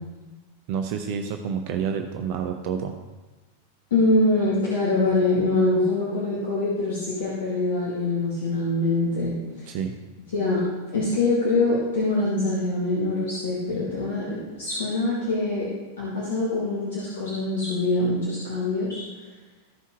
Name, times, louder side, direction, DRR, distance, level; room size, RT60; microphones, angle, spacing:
voice 1, 0.7-2.9 9.7-9.9, right 7 dB, 45° right, 5 dB, 0.6 m, -28 dB
voice 2, 3.9-9.7 10.3-10.6 10.9-15.7 16.0-19.0, left 2 dB, 60° left, -7 dB, 2.2 m, -24 dB
14.5 x 5.5 x 3.2 m, 1.2 s
figure-of-eight pair, 90°, 0 cm